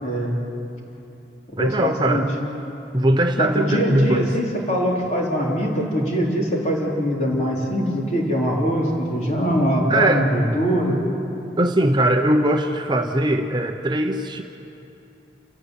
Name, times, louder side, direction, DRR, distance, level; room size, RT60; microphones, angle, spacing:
voice 1, 0.0-0.4 1.5-2.2 3.4-11.0, equal, 40° left, -2 dB, 3.9 m, -22 dB
voice 2, 1.6-2.3 2.9-4.3 9.9-10.3 11.6-14.4, right 1 dB, 25° right, 5 dB, 0.8 m, -20 dB
29.0 x 15.5 x 8.2 m, 2.9 s
head